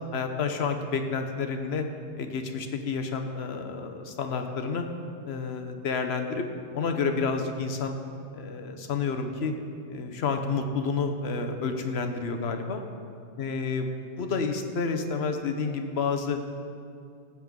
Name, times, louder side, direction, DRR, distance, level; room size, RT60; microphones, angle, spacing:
voice 1, 0.1-1.8 2.2-4.9 5.3-6.5 6.7-8.0 8.3-9.5 9.9-12.8 13.4-13.9 14.2-16.4, left 4 dB, 80° left, 5 dB, 1.1 m, -29 dB
16.0 x 7.5 x 3.7 m, 2.4 s
omnidirectional pair, 1.0 m